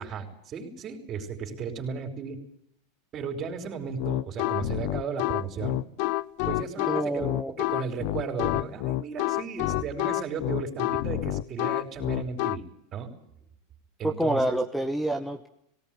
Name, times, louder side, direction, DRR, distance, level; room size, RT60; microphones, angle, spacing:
voice 1, 0.0-2.4 3.1-5.8 6.4-7.2 7.6-12.6 12.9-13.2 14.0-14.6, right 6 dB, 40° right, 4 dB, 4.9 m, -35 dB
sound 1, 4.0-12.6, left 19 dB, 60° left, 0.8 m, -28 dB
voice 2, 6.9-7.5 14.0-15.5, right 1 dB, ahead, 6 dB, 1.4 m, -27 dB
18.0 x 18.0 x 9.3 m, 0.75 s
hypercardioid pair, 105°, 0 cm